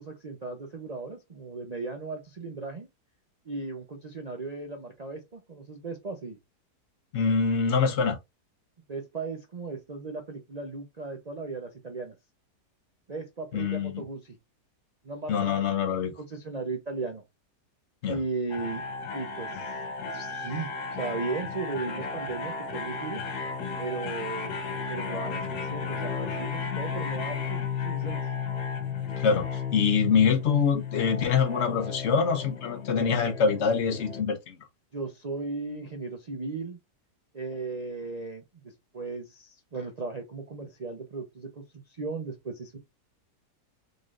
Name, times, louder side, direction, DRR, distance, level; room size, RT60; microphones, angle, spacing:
voice 1, 0.0-2.9 3.4-6.4 8.9-12.2 13.1-14.4 15.0-15.7 16.0-17.2 18.1-18.8 19.1-20.7 21.0-23.2 23.8-24.5 24.9-28.2 34.9-36.8 37.3-42.8, right 3 dB, 65° right, 0.4 m, -36 dB
voice 2, 7.1-8.2 13.5-14.0 15.3-16.1 18.0-18.2 29.2-34.6, left 6 dB, 55° left, 0.9 m, -25 dB
sound 1, 18.5-34.2, left 5 dB, 70° left, 1.5 m, -34 dB
4.0 x 3.3 x 2.5 m
omnidirectional pair, 1.8 m